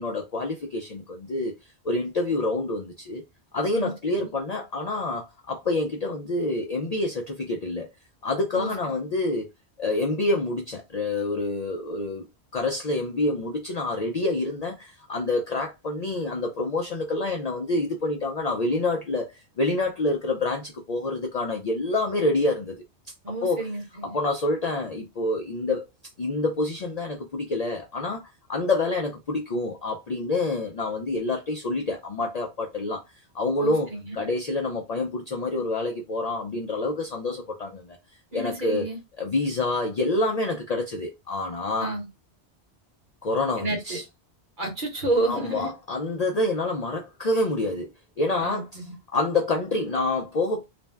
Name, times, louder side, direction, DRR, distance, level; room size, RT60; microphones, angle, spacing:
voice 1, 0.0-1.5 1.8-3.2 3.5-7.9 8.2-9.5 9.8-12.3 12.5-22.7 23.4-23.6 24.0-25.9 26.2-28.2 28.5-33.0 33.3-33.9 34.1-38.0 38.3-38.8 39.2-41.9 43.2-44.0 45.3-47.9 48.2-48.7 49.1-50.7, left 2 dB, 55° left, 0.4 m, -27 dB
voice 2, 3.7-4.3 8.5-8.7 23.2-24.2 33.6-34.2 38.3-39.0 41.8-42.1 43.6-44.0 44.6-45.7 48.4-48.9, right 2 dB, 50° right, 1.0 m, -30 dB
2.5 x 2.1 x 3.3 m
omnidirectional pair, 1.1 m